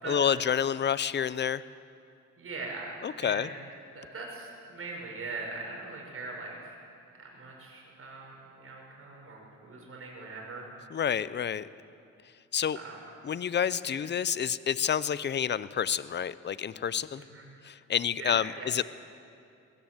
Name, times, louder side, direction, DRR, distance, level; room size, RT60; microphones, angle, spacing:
voice 1, 0.0-1.6 3.0-3.5 10.9-11.7 12.5-12.8 13.2-17.2 17.6-18.8, left 8 dB, 35° left, 17 dB, 0.7 m, -29 dB
voice 2, 2.4-2.9 3.2-3.5 3.9-6.8 7.1-10.7 12.7-13.0 13.8-14.0 17.3-17.4 18.2-18.7, right 3 dB, 45° right, -1 dB, 6.5 m, -41 dB
21.5 x 17.0 x 8.0 m, 2.5 s
cardioid pair, 90°, 30 cm